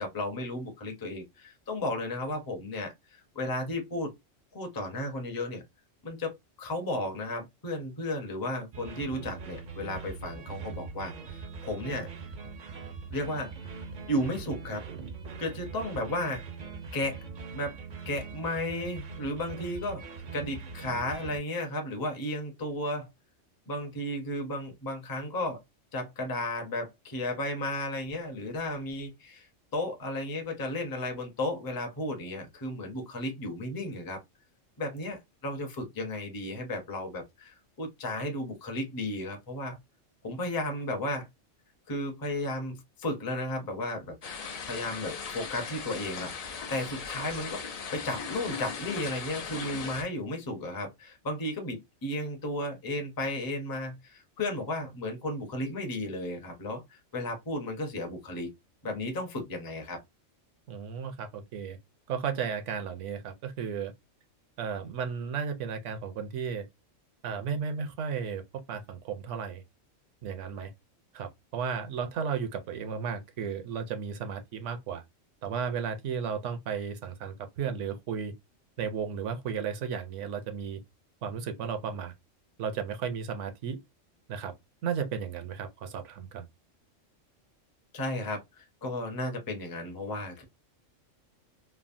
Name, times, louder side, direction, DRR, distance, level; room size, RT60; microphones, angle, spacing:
voice 1, 0.0-4.1 4.5-5.6 6.0-12.1 13.1-13.8 14.1-14.8 15.4-16.4 16.9-17.2 17.5-17.8 18.1-20.0 20.3-23.1 23.7-25.6 25.9-34.2 34.8-39.8 40.2-41.3 41.9-44.2 44.6-47.6 47.9-58.5 58.8-60.0 87.9-90.4, left 1 dB, 25° left, 0.5 m, -34 dB
sound 1, 8.7-21.4, right 5 dB, 55° right, 0.5 m, -42 dB
sound 2, 44.2-50.0, left 6 dB, 80° left, 0.3 m, -38 dB
voice 2, 60.7-61.8 62.1-63.9 64.6-66.7 67.2-69.6 70.2-70.7 71.1-75.0 75.4-78.3 78.8-80.8 81.2-82.1 82.6-83.8 84.3-84.5 84.8-86.5, right 6 dB, 75° right, 0.9 m, -34 dB
3.3 x 2.0 x 2.5 m
omnidirectional pair, 1.3 m